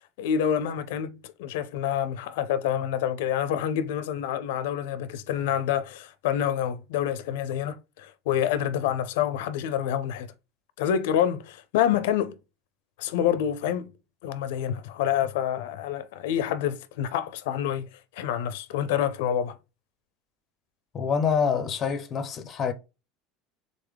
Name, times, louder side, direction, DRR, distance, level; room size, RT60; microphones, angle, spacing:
voice 1, 0.2-10.3 10.8-12.3 13.0-13.9 14.2-17.9 18.1-19.6, left 9 dB, 85° left, 0.4 m, -27 dB
voice 2, 20.9-22.7, left 6 dB, 25° left, 0.5 m, -26 dB
3.7 x 3.6 x 3.3 m
cardioid pair, 165°, 0 cm